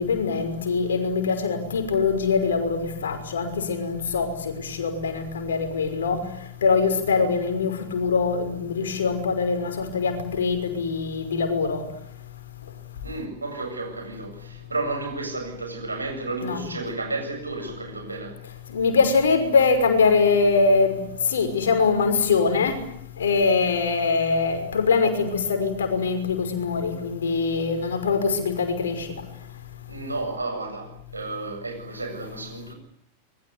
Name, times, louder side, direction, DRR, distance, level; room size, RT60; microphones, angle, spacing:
voice 1, 0.0-6.2 6.6-11.8 16.4-16.6 18.7-21.0 21.3-22.8 23.2-29.1, left 4 dB, 65° left, 5.8 m, -23 dB
voice 2, 13.0-18.4 27.8-28.0 29.9-32.7, right 3 dB, 80° right, 7.9 m, -32 dB
25.5 x 22.0 x 9.8 m
figure-of-eight pair, 90°, 0 cm